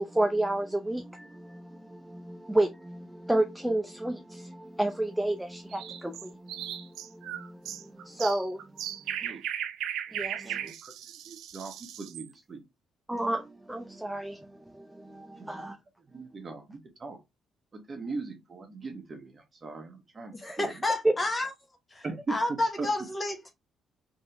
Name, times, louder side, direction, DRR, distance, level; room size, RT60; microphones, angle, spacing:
voice 1, 0.0-9.2 10.1-10.7 13.1-15.8 21.0-21.1, right 1 dB, 5° right, 0.5 m, -31 dB
sound 1, 5.7-12.3, right 10 dB, 85° right, 0.4 m, -37 dB
voice 2, 10.4-10.9 11.3-12.6 15.3-15.6 16.1-17.2 17.7-20.7 22.0-22.4 22.8-22.9, right 3 dB, 35° right, 1.3 m, -39 dB
voice 3, 20.3-21.5 21.9-23.5, left 2 dB, 25° left, 1.0 m, -30 dB
3.5 x 3.3 x 3.0 m
cardioid pair, 90°, 0 cm